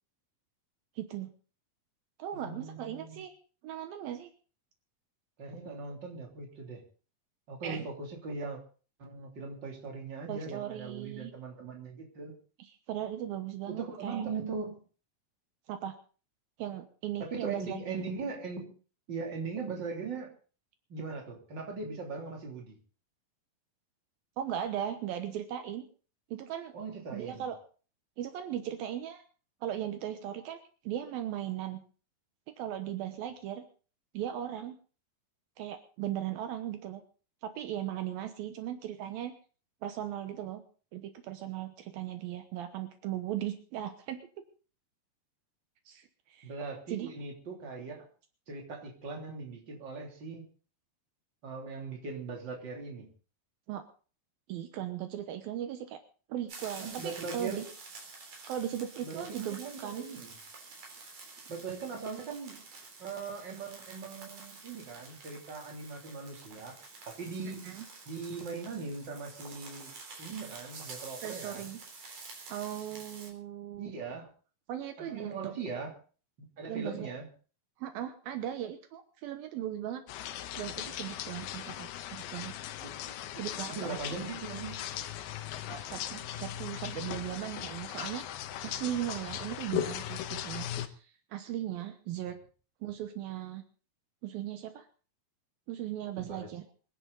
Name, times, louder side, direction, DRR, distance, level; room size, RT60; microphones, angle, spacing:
voice 1, 1.0-1.3 2.2-3.3 3.6-4.3 7.6-7.9 10.3-11.3 12.6-14.2 15.7-16.0 16.6-17.8 24.4-25.9 26.3-26.7 27.1-27.6 28.2-29.2 29.6-31.8 32.5-33.6 34.1-34.8 35.6-37.0 37.4-39.3 39.8-40.6 40.9-44.3 45.9-46.5 46.9-47.1 53.7-53.8 54.5-56.0 56.3-57.6 58.5-60.0 67.4-67.8 71.2-71.8 72.5-73.9 74.7-75.5 76.7-77.1 77.8-80.0 80.6-82.5 83.4-84.2 85.7-92.4 92.8-93.6 94.2-94.9 95.7-96.6, right 11 dB, 75° right, 8 dB, 2.8 m, -38 dB
voice 2, 2.3-3.2 5.4-6.8 7.5-8.6 9.0-12.3 13.7-14.8 17.2-18.7 19.1-20.3 20.9-22.8 26.7-27.5 46.4-48.1 48.5-50.5 51.4-53.1 56.8-57.6 59.0-60.3 61.5-62.6 63.0-66.8 67.1-67.7 68.1-69.9 70.2-71.7 73.8-74.3 75.0-75.9 76.4-77.3 82.8-83.4 83.7-84.9 96.2-96.5, right 4 dB, 30° right, 1 dB, 3.4 m, -40 dB
sound 1, 56.5-73.3, right 4 dB, 55° right, 5.1 m, -49 dB
sound 2, 80.1-90.9, left 11 dB, 80° left, 2.9 m, -38 dB
25.0 x 11.0 x 4.0 m, 0.39 s
omnidirectional pair, 4.3 m